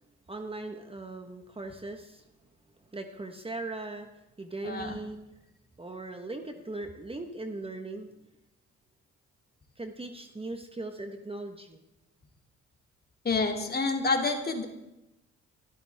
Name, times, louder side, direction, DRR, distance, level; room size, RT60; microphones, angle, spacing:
voice 1, 0.3-2.2 2.9-4.1 4.4-5.2 5.8-8.1 9.8-11.8, right 2 dB, 20° right, 5 dB, 1.4 m, -39 dB
voice 2, 4.6-5.0 13.2-14.6, left 3 dB, 30° left, 3 dB, 2.8 m, -28 dB
25.5 x 13.5 x 3.6 m, 0.91 s
cardioid pair, 90°, 30 cm